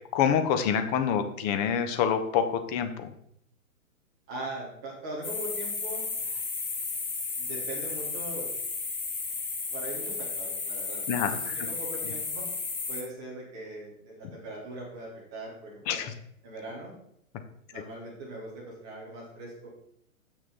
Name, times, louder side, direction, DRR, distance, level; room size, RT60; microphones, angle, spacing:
voice 1, 0.1-3.1 11.1-11.7 12.0-12.1 15.9-16.1, left 8 dB, 30° left, 8 dB, 0.8 m, -27 dB
voice 2, 4.3-6.4 7.4-8.5 9.7-12.5 12.9-16.0 16.4-17.0 17.7-19.7, right 2 dB, 5° right, -6 dB, 0.3 m, -41 dB
sound 1, 5.2-13.0, left 4 dB, 70° left, 2.3 m, -33 dB
8.1 x 6.0 x 4.0 m, 0.72 s
hypercardioid pair, 125°, 43 cm